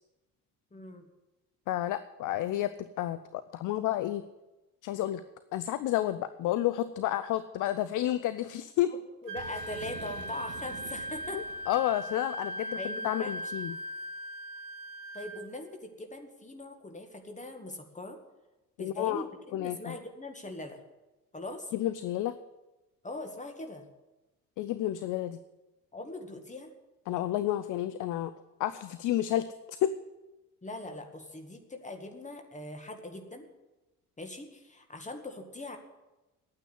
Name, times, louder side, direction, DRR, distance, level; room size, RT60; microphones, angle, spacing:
voice 1, 0.7-1.1 9.2-11.4 12.8-13.3 15.1-18.2 18.8-20.8 21.3-21.7 23.0-23.9 25.9-26.7 30.6-33.5 34.2-35.8, left 2 dB, 15° left, 5 dB, 1.9 m, -41 dB
voice 2, 1.7-4.2 4.8-5.2 5.5-8.9 11.3-13.8 18.8-19.3 19.5-20.0 21.7-22.4 24.6-25.4 27.1-28.3 28.6-29.9, left 13 dB, 40° left, 13 dB, 0.6 m, -31 dB
Wind instrument woodwind instrument, 9.3-15.5, equal, 45° right, 1.0 m, -39 dB
Boom, 9.3-12.1, right 6 dB, 80° right, 0.9 m, -48 dB
9.9 x 9.0 x 9.5 m, 1.1 s
figure-of-eight pair, 50°, 48 cm